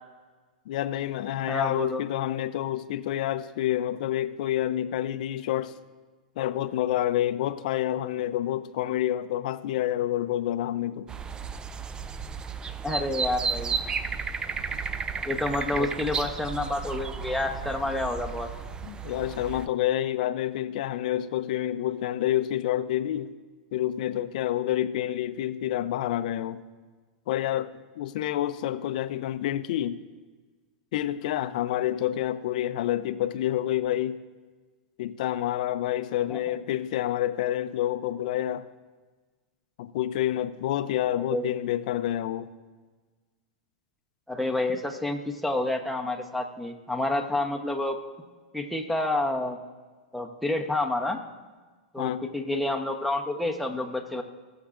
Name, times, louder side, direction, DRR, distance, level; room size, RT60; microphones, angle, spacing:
voice 1, 0.7-5.8 6.4-11.1 15.7-15.9 18.8-23.3 23.7-26.6 27.3-30.0 30.9-34.2 35.0-38.7 39.8-42.5 52.0-52.2, left 12 dB, 65° left, 12 dB, 0.5 m, -28 dB
voice 2, 1.5-2.0 12.8-13.8 15.2-18.5 36.3-36.4 41.2-41.5 44.3-48.0 48.5-49.6 50.1-51.2 51.9-54.2, left 2 dB, ahead, 2 dB, 0.9 m, -29 dB
sound 1, 11.1-19.7, right 6 dB, 15° right, 0.4 m, -33 dB
18.5 x 7.1 x 2.5 m, 1.4 s
hypercardioid pair, 120°, 5 cm